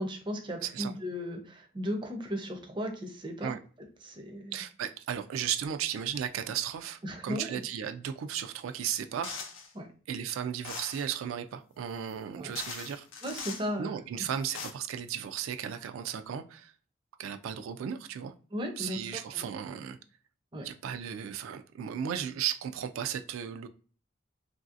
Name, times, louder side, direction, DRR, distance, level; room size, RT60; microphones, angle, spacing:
voice 1, 0.0-3.5 4.0-4.6 7.0-7.6 9.7-9.9 12.3-12.5 13.2-14.3 18.5-19.5 20.5-20.7, equal, 25° right, 0.4 m, -36 dB
voice 2, 0.6-0.9 3.4-3.6 4.5-9.5 10.1-13.1 13.8-16.7 17.2-18.3 18.8-20.0 20.6-23.7, right 9 dB, 90° right, 0.3 m, -35 dB
sound 1, 9.2-9.7 10.6-11.1 12.1-12.2 12.6-13.7 14.3-14.7, left 5 dB, 85° left, 0.6 m, -41 dB
3.1 x 2.6 x 2.4 m
head